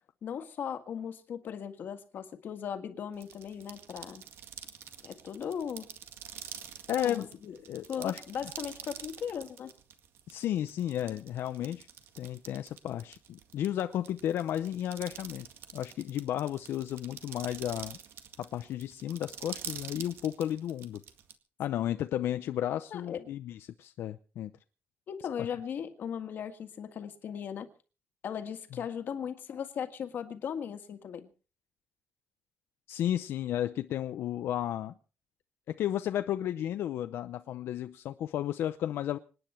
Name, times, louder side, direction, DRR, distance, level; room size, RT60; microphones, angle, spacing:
voice 1, 0.2-4.2 5.0-5.9 7.0-7.5 7.9-9.7 22.9-23.3 25.1-27.7 28.2-31.3, left 8 dB, 55° left, 1.8 m, -38 dB
sound 1, 3.1-21.3, right 9 dB, 80° right, 2.0 m, -46 dB
voice 2, 6.9-7.3 7.7-8.2 10.3-11.9 12.2-15.5 15.7-18.0 18.4-21.0 21.6-24.5 32.9-34.9 35.7-39.2, left 11 dB, 80° left, 0.7 m, -33 dB
26.5 x 9.8 x 4.5 m
cardioid pair, 175°, 4 cm